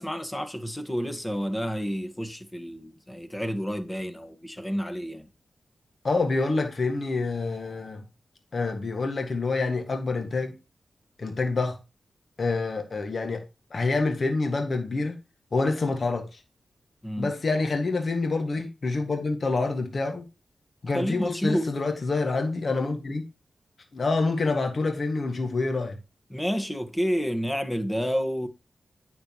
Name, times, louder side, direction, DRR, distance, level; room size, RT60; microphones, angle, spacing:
voice 1, 0.0-5.3 17.0-17.3 20.9-21.7 26.3-28.5, equal, 15° left, 1.6 m, -29 dB
voice 2, 6.0-8.0 8.5-10.5 11.2-11.8 12.4-13.4 13.7-15.2 15.5-16.3 17.2-20.2 20.8-23.2 23.9-26.0, left 3 dB, 60° left, 1.8 m, -27 dB
9.3 x 6.5 x 3.1 m
cardioid pair, 55°, 0 cm